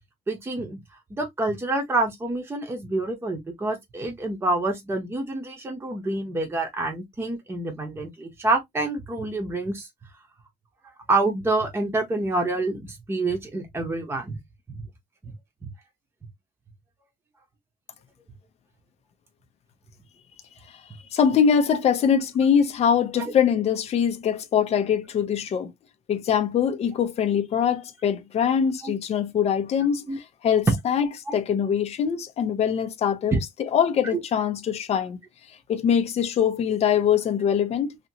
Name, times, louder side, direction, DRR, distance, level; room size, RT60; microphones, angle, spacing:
voice 1, 0.3-0.8 1.1-9.9 11.1-14.4 15.2-15.3 28.8-28.9 30.1-30.2 31.3-31.4 33.3-33.4 34.1-34.2, right 2 dB, 15° right, 0.9 m, -27 dB
voice 2, 21.1-25.7 26.1-35.2 35.7-38.0, left 8 dB, 40° left, 0.6 m, -23 dB
2.9 x 2.8 x 2.7 m
cardioid pair, 150°, 16 cm